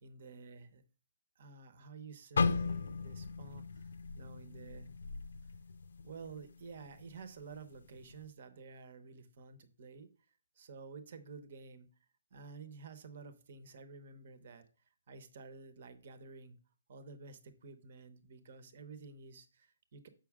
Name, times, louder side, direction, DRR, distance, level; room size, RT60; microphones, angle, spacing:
voice 1, 0.0-0.8 1.4-3.9 4.1-4.9 6.0-10.1 10.6-11.9 12.3-14.7 15.1-16.6 16.9-20.1, right 4 dB, 45° right, 10 dB, 1.0 m, -51 dB
sound 1, 2.4-6.4 6.8-7.0 7.7-8.0, left 4 dB, 80° left, 0.7 m, -36 dB
7.2 x 5.6 x 3.6 m, 0.38 s
hypercardioid pair, 165°, 0 cm